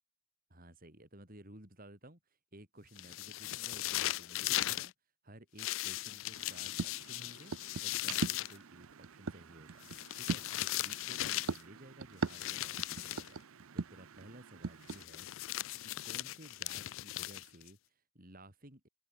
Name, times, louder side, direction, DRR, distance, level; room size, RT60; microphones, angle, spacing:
voice 1, 0.5-4.9 5.2-7.5 7.8-9.9 10.1-15.3 15.8-18.9, right 1 dB, 40° right, 5.0 m, -56 dB
sound 1, 3.0-4.9 5.6-8.6 9.8-11.6 12.3-13.3 14.9-17.7, left 16 dB, 65° left, 0.4 m, -38 dB
sound 2, 6.3-15.0, right 4 dB, 75° right, 0.7 m, -42 dB
open air
head